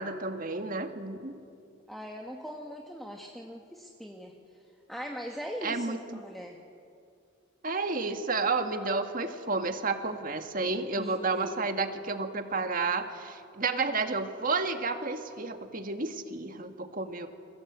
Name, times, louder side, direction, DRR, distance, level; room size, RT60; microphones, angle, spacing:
voice 1, 0.0-1.3 5.6-6.2 7.6-17.3, right 3 dB, 45° right, 6 dB, 1.9 m, -31 dB
voice 2, 1.9-4.3 4.9-6.6 8.7-9.0 11.0-11.7, equal, ahead, 1 dB, 1.6 m, -41 dB
29.5 x 22.5 x 8.3 m, 2.4 s
head